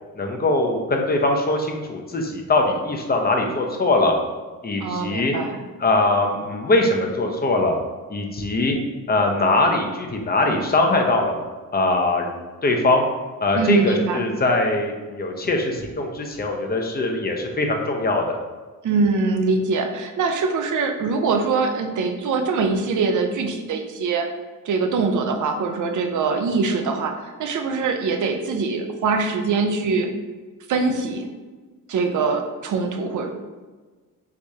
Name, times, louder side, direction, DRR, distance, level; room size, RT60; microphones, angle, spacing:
voice 1, 0.2-4.1 4.6-5.3 5.8-7.8 8.1-8.8 9.1-11.3 11.7-12.3 12.6-13.1 13.4-18.4, left 2 dB, 30° left, 2 dB, 0.7 m, -21 dB
voice 2, 4.8-5.6 13.5-14.3 18.8-24.3 24.6-30.1 30.7-31.3 31.9-33.3, right 4 dB, 65° right, 5 dB, 0.6 m, -23 dB
4.8 x 3.5 x 2.7 m, 1.3 s
cardioid pair, 100°, 33 cm